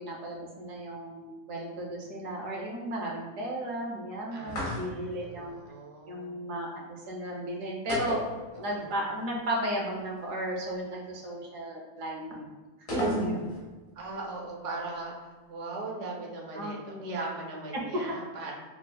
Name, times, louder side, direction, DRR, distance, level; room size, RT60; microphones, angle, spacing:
voice 1, 0.0-5.6 6.1-8.2 8.6-12.5 12.9-13.5 16.5-17.1 17.7-18.0, right 1 dB, 70° right, -1 dB, 1.1 m, -34 dB
voice 2, 4.3-6.5 8.5-8.9 14.0-18.5, right 2 dB, 45° right, -2 dB, 0.4 m, -39 dB
sound 1, 4.5-5.2 7.9-8.9 9.2-9.3 12.9-13.7, equal, 80° left, 1.6 m, -33 dB
5.9 x 2.0 x 2.3 m, 1.2 s
omnidirectional pair, 1.5 m